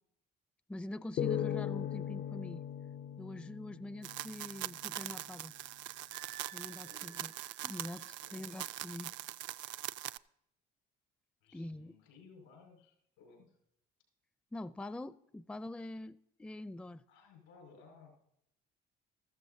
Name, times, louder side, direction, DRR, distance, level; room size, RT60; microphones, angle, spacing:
voice 1, 0.7-2.6 3.2-5.5 6.5-7.3 7.6-9.1 9.6-9.8 11.5-11.9 14.5-17.0, left 1 dB, 5° left, 0.4 m, -44 dB
sound 1, 1.2-4.6, left 10 dB, 55° left, 0.5 m, -38 dB
sound 2, 4.0-10.2, right 14 dB, 60° right, 0.4 m, -43 dB
Wind instrument woodwind instrument, 6.1-8.1, right 11 dB, 80° right, 1.6 m, -54 dB
voice 2, 6.7-7.2 8.2-8.6 11.4-13.6 17.1-18.1, left 5 dB, 85° left, 5.6 m, -59 dB
14.0 x 14.0 x 2.7 m
supercardioid pair, 65°, 21 cm